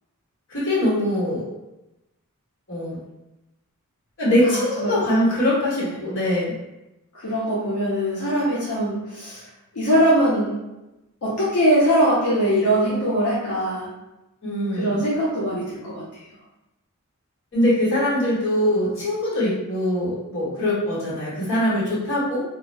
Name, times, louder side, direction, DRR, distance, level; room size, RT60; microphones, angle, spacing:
voice 1, 0.5-1.5 2.7-3.0 4.2-6.5 14.4-15.0 17.5-22.4, left 1 dB, 55° left, -8 dB, 1.2 m, -22 dB
voice 2, 4.4-4.9 5.8-5.9 7.1-9.4 9.7-10.5 11.2-13.9 14.7-16.0, equal, 85° left, -8 dB, 0.6 m, -22 dB
2.3 x 2.0 x 3.2 m, 0.97 s
head